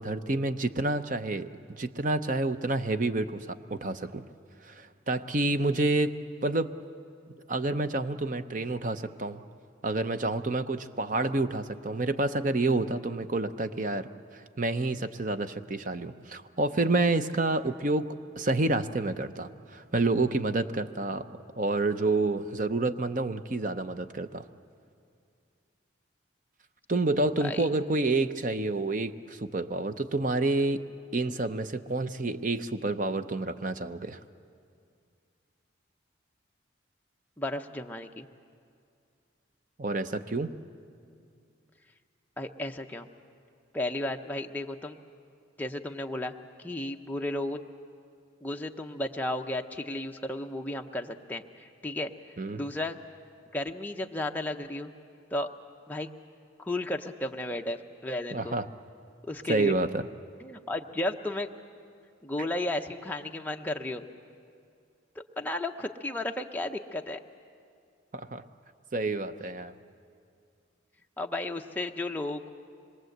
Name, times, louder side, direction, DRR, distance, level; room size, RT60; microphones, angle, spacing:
voice 1, 0.0-1.5 1.8-4.2 4.6-6.7 7.5-9.4 9.8-18.1 18.4-21.3 21.5-24.5 26.9-30.8 31.1-34.2 39.8-40.5 52.4-52.6 58.3-58.7 59.5-60.1 68.1-68.4 68.9-69.7, right 2 dB, 40° right, 10 dB, 0.7 m, -29 dB
voice 2, 37.4-38.3 42.4-43.1 43.7-45.0 45.6-46.3 46.6-47.6 48.4-52.1 52.5-53.0 53.5-54.9 55.3-55.5 55.9-56.1 56.6-58.6 59.2-59.7 60.4-61.5 62.2-64.0 65.4-67.2 71.2-72.5, left 1 dB, 10° left, 3 dB, 0.7 m, -33 dB
26.0 x 22.0 x 7.9 m, 2.3 s
head